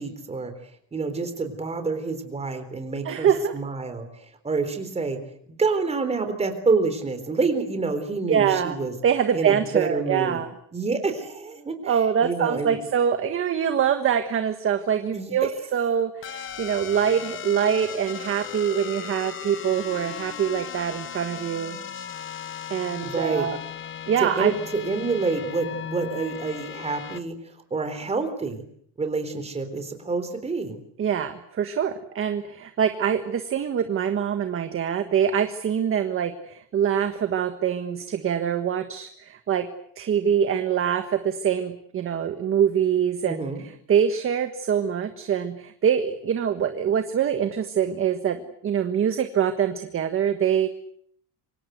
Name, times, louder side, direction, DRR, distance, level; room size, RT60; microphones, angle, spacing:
voice 1, 0.0-5.2 5.6-8.9 9.3-10.4 10.7-12.8 15.1-15.5 23.0-23.5 24.2-28.6 29.0-30.8 43.2-43.6, right 4 dB, 15° right, 8 dB, 3.8 m, -28 dB
voice 2, 3.0-3.6 8.3-8.8 9.0-10.5 11.8-21.8 22.7-23.6 24.1-24.5 31.0-39.7 40.0-43.4 43.9-48.4 48.6-50.7, right 8 dB, 30° right, 8 dB, 1.5 m, -24 dB
sound 1, 16.2-27.2, left 8 dB, 30° left, 1.1 m, -37 dB
27.5 x 25.0 x 8.2 m, 0.66 s
cardioid pair, 180°, 43 cm